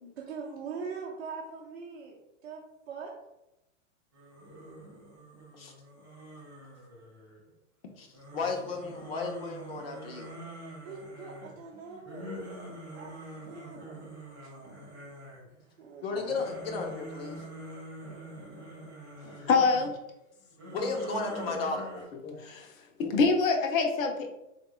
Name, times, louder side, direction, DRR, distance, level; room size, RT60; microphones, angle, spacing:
voice 1, 0.2-3.1 10.8-12.3 12.9-14.0 14.4-14.5 15.8-16.3, right 5 dB, 55° right, -3 dB, 0.7 m, -42 dB
sound 1, 4.1-7.5 8.1-15.6 16.0-19.9 20.5-22.0, right 1 dB, 15° right, 0.4 m, -45 dB
voice 2, 8.3-10.3 16.0-17.4 20.7-21.9, left 3 dB, 50° left, 2 dB, 0.8 m, -34 dB
voice 3, 19.4-19.9 22.2-22.7 23.0-24.4, left 4 dB, 90° left, 4 dB, 0.9 m, -25 dB
3.9 x 3.5 x 2.3 m, 0.90 s
supercardioid pair, 180°, 39 cm